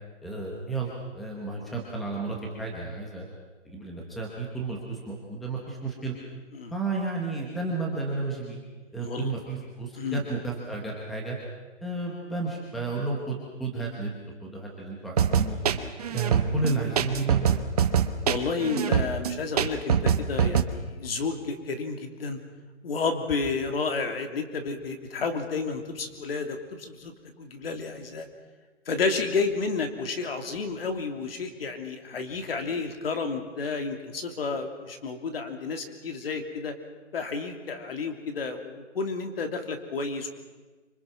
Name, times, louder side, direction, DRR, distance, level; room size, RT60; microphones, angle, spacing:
voice 1, 0.2-3.2 3.6-6.1 6.7-8.6 8.9-11.4 11.8-14.1 14.4-15.6 16.1-17.5, right 3 dB, ahead, -2 dB, 1.0 m, -32 dB
voice 2, 9.0-9.3 9.9-10.2 18.2-22.4 22.8-27.1 27.4-28.3 28.9-36.8 37.1-40.3, left 4 dB, 50° left, 6 dB, 3.0 m, -31 dB
sound 1, 15.2-20.6, right 8 dB, 30° right, 1.1 m, -24 dB
26.0 x 24.5 x 6.0 m, 1.3 s
hypercardioid pair, 170°, 36 cm